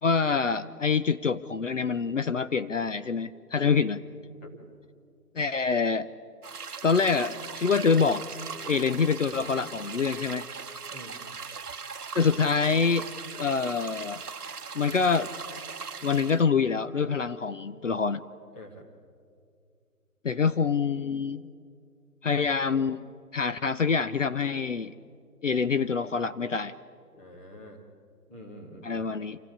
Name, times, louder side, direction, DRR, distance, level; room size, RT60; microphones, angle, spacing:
voice 1, 0.0-4.0 5.4-6.1 6.8-8.2 8.7-10.5 12.1-13.1 13.4-14.2 14.7-15.3 16.0-18.2 20.2-21.4 22.2-23.0 23.3-24.9 25.4-26.7 28.8-29.4, left 5 dB, 50° left, 12 dB, 0.7 m, -26 dB
sound 1, 6.4-16.4, right 5 dB, 70° right, 1.1 m, -40 dB
voice 2, 18.5-18.9 27.1-27.8 28.3-29.0, left 1 dB, 10° left, -1 dB, 1.0 m, -45 dB
27.5 x 15.0 x 9.8 m, 2.3 s
figure-of-eight pair, 150°, 47 cm